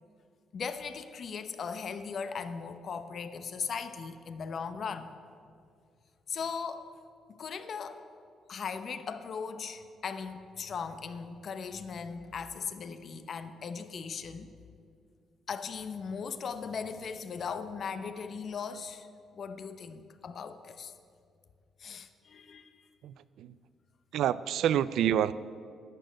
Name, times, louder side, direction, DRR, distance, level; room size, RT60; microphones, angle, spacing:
voice 1, 0.5-5.1 6.3-6.8 7.4-8.0 8.5-14.5 15.5-19.1 19.3-20.9 21.8-22.7, left 6 dB, 55° left, 10 dB, 0.8 m, -38 dB
voice 2, 23.0-23.6 24.1-25.3, right 10 dB, 80° right, 17 dB, 0.4 m, -28 dB
12.0 x 6.5 x 9.3 m, 2.3 s
cardioid pair, 90°, 0 cm